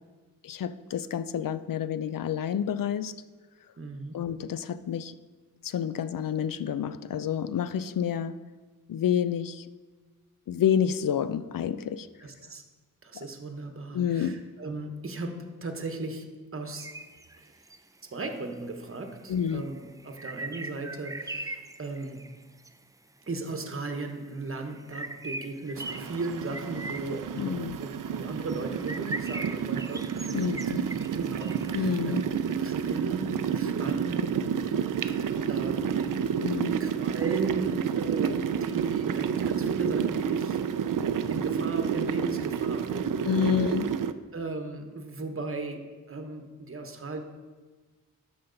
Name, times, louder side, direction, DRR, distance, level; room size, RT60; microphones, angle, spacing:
voice 1, 0.4-3.1 4.1-5.1 5.6-8.4 8.9-9.7 10.5-12.1 13.1-13.2 13.9-14.4 19.3-19.6 27.4-27.8 30.3-30.8 31.7-32.2 36.4-36.8 43.2-43.9, left 8 dB, 80° left, 13 dB, 0.5 m, -29 dB
voice 2, 3.8-4.2 12.2-12.6 13.0-17.0 18.0-22.3 23.3-30.6 31.0-32.2 32.6-36.4 36.8-40.6 41.0-43.5 44.3-47.2, right 3 dB, 40° right, 5 dB, 1.0 m, -37 dB
sound 1, 16.8-17.8 18.7-18.8 19.1-22.7 23.5-23.7 24.0-32.7, right 2 dB, 10° right, 0.3 m, -41 dB
sound 2, 25.8-44.1, right 7 dB, 70° right, 0.5 m, -30 dB
12.5 x 5.7 x 3.9 m, 1.3 s
wide cardioid pair, 110°, 33 cm